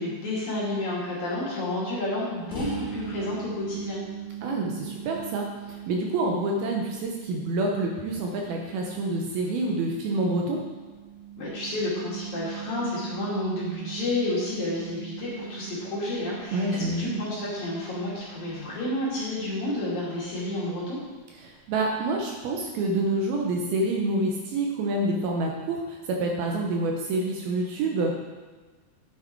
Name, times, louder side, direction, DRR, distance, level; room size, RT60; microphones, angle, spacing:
voice 1, 0.0-4.0 11.4-21.0, left 2 dB, 50° left, -7 dB, 3.6 m, -30 dB
sound 1, 2.5-20.0, right 9 dB, 20° left, 1.9 m, -40 dB
voice 2, 4.4-10.6 16.5-17.2 21.4-28.1, right 2 dB, 75° right, 0 dB, 2.5 m, -27 dB
10.0 x 7.3 x 4.6 m, 1.3 s
omnidirectional pair, 4.8 m